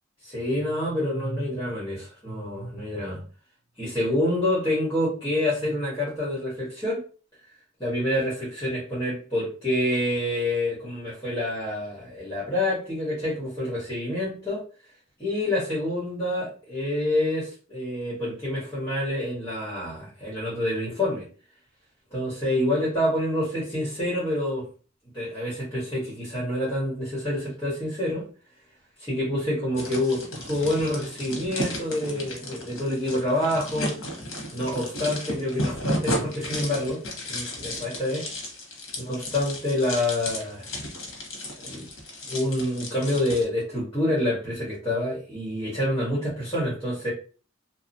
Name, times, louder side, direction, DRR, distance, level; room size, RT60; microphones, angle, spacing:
voice 1, 0.2-3.2 3.8-7.0 7.8-14.6 15.2-21.3 22.1-24.7 25.1-28.3 29.0-33.9 34.5-37.0 37.3-38.2 39.0-40.7 41.6-41.9 42.3-47.1, left 1 dB, 15° left, -8 dB, 1.4 m, -27 dB
sound 1, 29.8-43.4, left 1 dB, 80° left, 0.9 m, -34 dB
2.8 x 2.3 x 2.6 m, 0.38 s
head